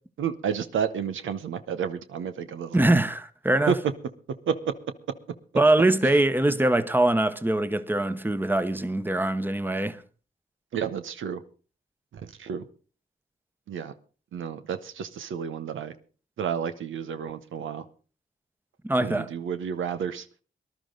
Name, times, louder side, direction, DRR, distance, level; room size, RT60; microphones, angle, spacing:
voice 1, 0.2-3.0 3.7-3.8 4.5-4.7 10.7-11.4 12.1-12.6 13.7-13.9 14.3-15.9 16.4-17.8 19.0-20.3, right 7 dB, 90° right, 0.9 m, -31 dB
voice 2, 2.7-3.7 5.5-10.0 18.8-19.3, right 1 dB, 10° right, 1.0 m, -23 dB
19.0 x 11.5 x 3.9 m
cardioid pair, 55°, 20 cm